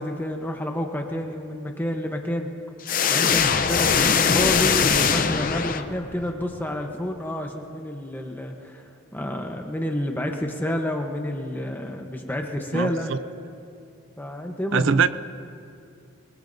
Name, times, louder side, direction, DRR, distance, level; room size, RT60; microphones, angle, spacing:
voice 1, 0.0-2.5 3.1-13.1 14.2-15.0, left 1 dB, 10° left, 2 dB, 0.9 m, -29 dB
sound 1, 2.9-6.2, left 6 dB, 40° left, 0.6 m, -21 dB
voice 2, 12.7-13.2 14.7-15.1, right 5 dB, 60° right, 14 dB, 0.4 m, -22 dB
22.5 x 21.0 x 2.6 m, 2.4 s
head